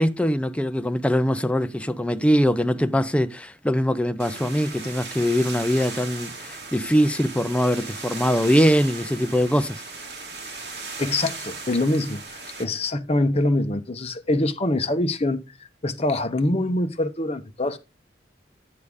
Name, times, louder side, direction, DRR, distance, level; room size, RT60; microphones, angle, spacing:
voice 1, 0.0-9.8, equal, 5° left, 0.4 m, -22 dB
sound 1, 4.2-12.6, right 4 dB, 60° right, 2.9 m, -37 dB
voice 2, 11.0-15.4 15.8-17.8, left 2 dB, 35° left, 0.9 m, -24 dB
9.6 x 6.6 x 3.6 m
head